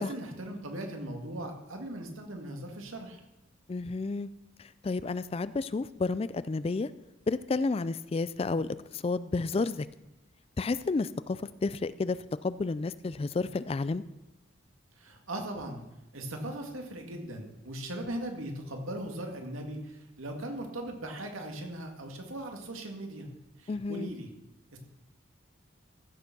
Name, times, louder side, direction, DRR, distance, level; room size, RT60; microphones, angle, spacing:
voice 1, 0.0-3.2 15.0-15.8 16.1-23.3 23.6-24.3 24.7-24.8, right 1 dB, 85° right, 3 dB, 2.1 m, -39 dB
voice 2, 3.7-4.3 4.6-6.9 7.3-9.9 10.6-12.2 12.4-14.0 23.7-24.1, left 3 dB, 30° left, 16 dB, 0.3 m, -31 dB
15.0 x 7.0 x 6.0 m, 0.92 s
head